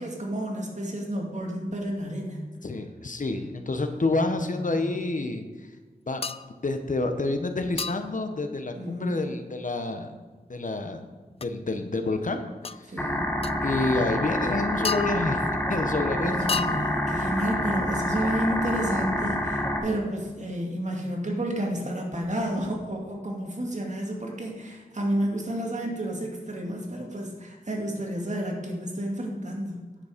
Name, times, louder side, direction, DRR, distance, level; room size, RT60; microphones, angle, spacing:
voice 1, 0.0-2.5 4.0-4.9 8.7-9.2 12.8-13.4 16.2-29.8, right 1 dB, 50° right, 0 dB, 2.4 m, -31 dB
voice 2, 2.6-5.4 6.1-6.3 6.6-10.1 10.5-11.1 11.4-12.4 12.7-12.9 13.6-16.5, left 2 dB, 55° left, 6 dB, 1.1 m, -28 dB
sound 1, 6.2-6.5 7.8-8.2 11.4-11.5 12.6-12.8 13.4-13.6 14.8-15.5 16.5-17.2, left 5 dB, 40° left, 0.4 m, -32 dB
sound 2, 13.0-19.8, left 1 dB, 10° left, 1.6 m, -27 dB
9.9 x 7.2 x 5.1 m, 1.4 s
wide cardioid pair, 55°, 16 cm